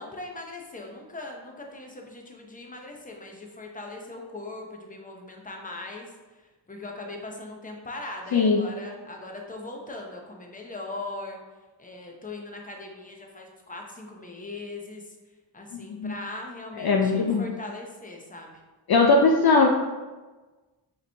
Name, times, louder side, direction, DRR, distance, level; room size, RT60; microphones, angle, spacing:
voice 1, 0.0-11.4 11.8-15.1 15.5-18.5, left 2 dB, 15° left, 1 dB, 0.8 m, -40 dB
voice 2, 8.3-8.6 15.9-16.1 16.8-17.5 18.9-19.7, left 3 dB, 55° left, 1 dB, 0.5 m, -20 dB
4.6 x 3.2 x 3.4 m, 1.2 s
wide cardioid pair, 70°, 47 cm